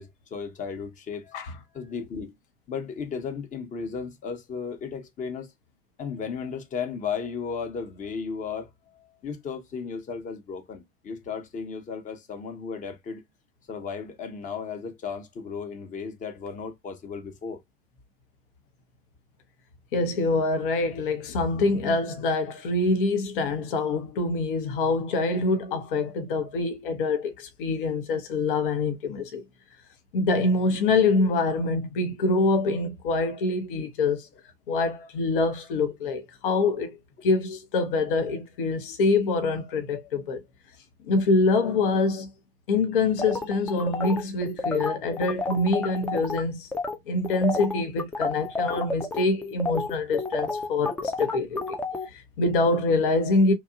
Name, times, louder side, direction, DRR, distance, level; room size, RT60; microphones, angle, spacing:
voice 1, 0.0-2.4 2.7-5.5 6.0-13.2 13.7-17.6 33.8-33.9, left 6 dB, 25° left, 0.8 m, -35 dB
voice 2, 19.9-29.4 30.1-34.3 34.7-37.0 37.2-40.4 41.0-42.3 42.7-46.7 47.1-51.8 52.1-53.5, left 3 dB, 60° left, 0.7 m, -25 dB
sound 1, 43.2-46.4 46.7-47.0 47.2-52.1, left 2 dB, 5° left, 0.3 m, -30 dB
2.9 x 2.2 x 2.3 m
figure-of-eight pair, 80°, 30 cm